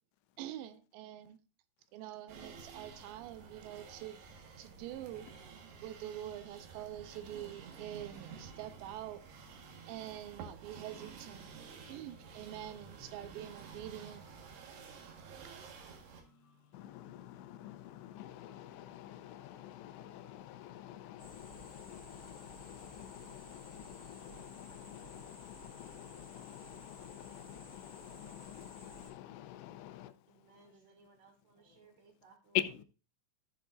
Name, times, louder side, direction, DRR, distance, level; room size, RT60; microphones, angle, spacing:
voice 1, 0.4-1.4 1.9-4.2 4.6-5.3 5.8-9.2 9.9-11.5 11.9-14.2, right 12 dB, 90° right, 3.0 m, -45 dB
sound 1, 2.3-16.2, right 5 dB, 70° right, 3.5 m, -51 dB
sound 2, 6.2-20.4, left 2 dB, 40° left, 3.3 m, -69 dB
voice 2, 16.7-30.6 32.5-32.8, left 13 dB, 85° left, 2.8 m, -45 dB
sound 3, 21.2-29.1, right 2 dB, 25° right, 3.3 m, -56 dB
voice 3, 30.3-32.6, right 4 dB, 45° right, 2.6 m, -63 dB
14.0 x 7.1 x 2.5 m
omnidirectional pair, 5.0 m